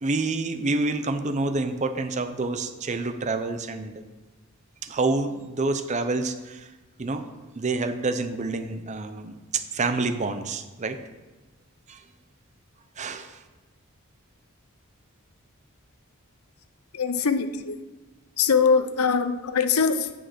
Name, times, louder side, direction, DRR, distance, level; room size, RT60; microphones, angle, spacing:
voice 1, 0.0-4.0 4.8-6.7 7.0-7.2 7.6-11.0 11.9-12.0 13.0-13.4, right 3 dB, 30° right, 0.6 m, -28 dB
voice 2, 16.9-17.8 18.4-20.1, left 5 dB, 85° left, 0.7 m, -22 dB
8.0 x 6.3 x 6.2 m
head